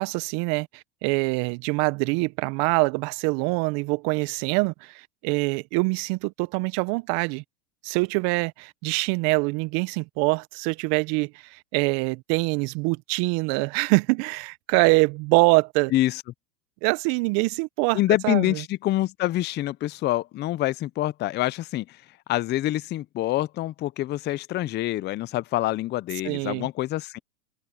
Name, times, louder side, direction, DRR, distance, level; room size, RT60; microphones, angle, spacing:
voice 1, 0.0-7.4 7.8-15.9 16.8-18.6 26.2-26.7, right 28 dB, 50° right, 0.9 m, -24 dB
voice 2, 15.9-16.2 17.9-22.0 22.3-27.2, left 15 dB, 25° left, 0.4 m, -26 dB
hypercardioid pair, 110°, 47 cm